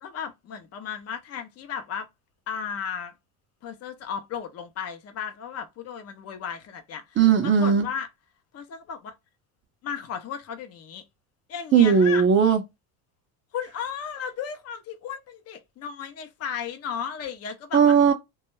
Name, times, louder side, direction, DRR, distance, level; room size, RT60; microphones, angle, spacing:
voice 1, 0.0-2.1 2.5-3.1 3.6-8.1 8.5-9.1 9.8-11.0 11.5-12.3 13.5-17.9, left 7 dB, 35° left, 0.6 m, -35 dB
voice 2, 7.2-7.9 11.7-12.6 17.7-18.1, right 7 dB, 30° right, 0.5 m, -17 dB
2.3 x 2.1 x 3.0 m
supercardioid pair, 115°, 42 cm